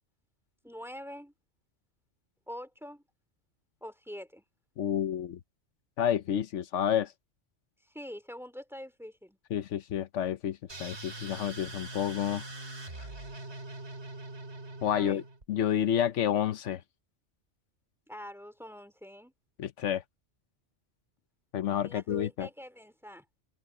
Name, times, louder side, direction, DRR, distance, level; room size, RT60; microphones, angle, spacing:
voice 1, 0.6-1.3 2.5-3.0 3.8-4.4 7.8-9.4 14.9-15.2 18.1-19.3 21.8-23.2, equal, ahead, 2.7 m, -44 dB
voice 2, 4.8-5.4 6.0-7.1 9.5-12.4 14.8-15.2 15.5-16.8 19.6-20.0 21.5-22.5, left 10 dB, 80° left, 1.0 m, -29 dB
sound 1, 10.7-15.5, right 2 dB, 65° right, 3.8 m, -43 dB
omnidirectional pair, 1.2 m